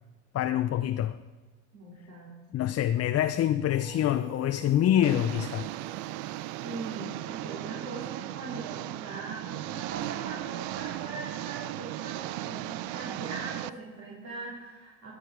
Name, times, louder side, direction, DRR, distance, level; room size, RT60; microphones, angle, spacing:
voice 1, 0.3-1.2 2.5-5.7, left 11 dB, 40° left, 0.6 m, -26 dB
voice 2, 1.7-2.6 6.6-15.1, right 3 dB, 45° right, 3.6 m, -41 dB
Singing, 3.7-8.4, left 1 dB, 30° right, 4.4 m, -50 dB
Engine, 5.0-13.7, right 15 dB, 65° right, 0.6 m, -36 dB
13.5 x 9.6 x 5.0 m
hypercardioid pair, 65°, 38 cm